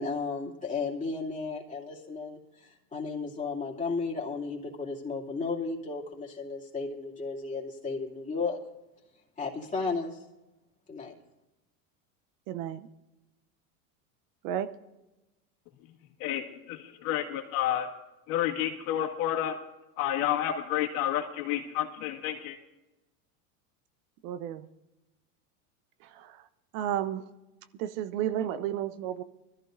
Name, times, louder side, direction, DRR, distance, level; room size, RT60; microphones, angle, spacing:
voice 1, 0.0-2.4 2.9-8.6 9.4-10.2 10.9-11.1, left 4 dB, 15° left, -4 dB, 2.6 m, -34 dB
voice 2, 12.5-12.9 14.4-14.7 24.2-24.7 26.1-26.4 26.7-27.2 27.8-29.2, right 11 dB, 65° right, 13 dB, 0.9 m, -32 dB
voice 3, 16.2-17.9 18.3-19.6 20.0-22.6, left 11 dB, 65° left, 2 dB, 1.9 m, -30 dB
21.0 x 14.0 x 2.6 m, 1.0 s
supercardioid pair, 110°, 43 cm